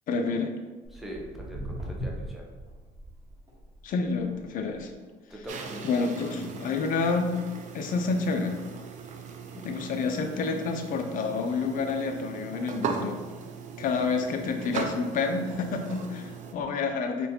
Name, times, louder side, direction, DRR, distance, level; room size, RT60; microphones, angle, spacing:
voice 1, 0.1-0.5 3.8-4.9 5.8-7.4 7.7-8.6 9.6-13.2 13.8-17.3, left 4 dB, 55° left, 5 dB, 0.5 m, -29 dB
Walk footsteps, 0.8-7.5 7.8-8.2 8.7-8.8 9.5-9.6 10.0-10.1 10.3-10.4 10.9-11.1 11.8-13.4 14.0-14.1 14.8-14.9 15.3-15.6 16.2-16.3, equal, 20° right, 1.2 m, -42 dB
voice 2, 0.9-2.5 5.3-6.0, equal, ahead, -2 dB, 0.6 m, -41 dB
sound 1, 5.5-16.5, right 5 dB, 45° right, 0.4 m, -39 dB
3.6 x 2.5 x 2.7 m, 1.3 s
cardioid pair, 110°, 17 cm